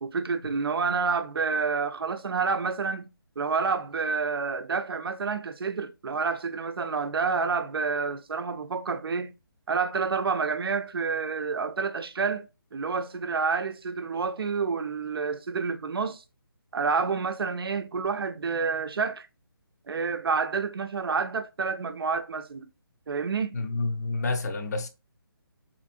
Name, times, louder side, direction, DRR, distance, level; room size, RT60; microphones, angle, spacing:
voice 1, 0.0-9.3 9.7-16.2 16.7-19.3 19.9-22.7 23.1-23.5, right 5 dB, 75° right, 0.5 m, -29 dB
voice 2, 23.5-24.9, left 3 dB, 45° left, 0.5 m, -29 dB
3.0 x 2.6 x 2.4 m
figure-of-eight pair, 160°, 13 cm